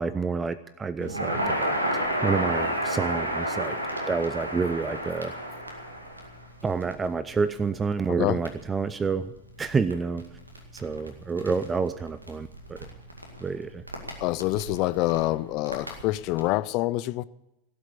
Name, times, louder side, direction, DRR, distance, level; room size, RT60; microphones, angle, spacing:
voice 1, 0.0-1.8 2.2-3.8 4.1-5.3 6.6-10.3 10.7-12.9 13.4-13.8, right 4 dB, 15° right, 0.5 m, -28 dB
Crackle, 1.0-16.5, equal, 80° right, 2.1 m, -33 dB
voice 2, 8.1-8.4 14.2-17.2, left 18 dB, 40° left, 0.5 m, -26 dB
17.0 x 7.9 x 8.4 m
figure-of-eight pair, 90°, 0 cm